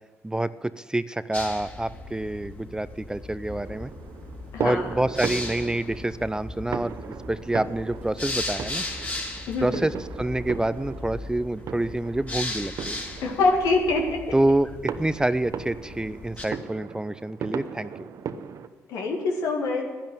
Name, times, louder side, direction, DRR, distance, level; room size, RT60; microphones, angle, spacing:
voice 1, 0.2-3.9 4.6-8.8 9.6-13.0 14.3-18.1, right 1 dB, 10° right, 16 dB, 0.5 m, -27 dB
sound 1, 1.3-16.5, left 2 dB, 25° left, 3.3 m, -37 dB
sound 2, 3.5-18.7, right 7 dB, 60° right, 0.8 m, -38 dB
voice 2, 4.5-4.9 9.5-9.9 13.2-14.2 18.9-19.8, left 3 dB, 70° left, 1 dB, 2.1 m, -24 dB
11.0 x 10.5 x 9.1 m, 1.3 s
hypercardioid pair, 55°, 6 cm